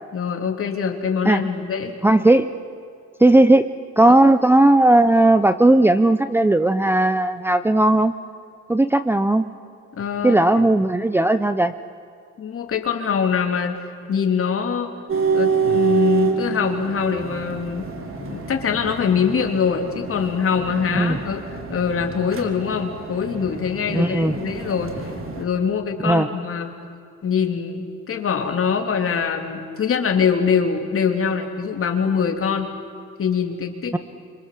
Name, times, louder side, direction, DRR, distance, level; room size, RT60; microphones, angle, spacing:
voice 1, 0.1-2.0 4.1-4.2 9.9-10.6 12.4-13.8 14.1-14.9 15.3-17.9 18.2-21.4 21.7-24.9 25.4-26.7 27.2-32.7 33.2-33.9, left 6 dB, 50° left, 4 dB, 3.3 m, -23 dB
voice 2, 2.0-2.5 3.2-3.6 4.0-8.1 8.7-9.5 10.2-11.7 20.9-21.2 23.9-24.4 26.0-26.3 33.9-34.0, right 2 dB, 10° right, 8 dB, 0.7 m, -16 dB
sound 1, 15.1-25.4, right 5 dB, 45° right, 3.3 m, -27 dB
26.5 x 26.0 x 7.7 m, 2.4 s
cardioid pair, 130°, 29 cm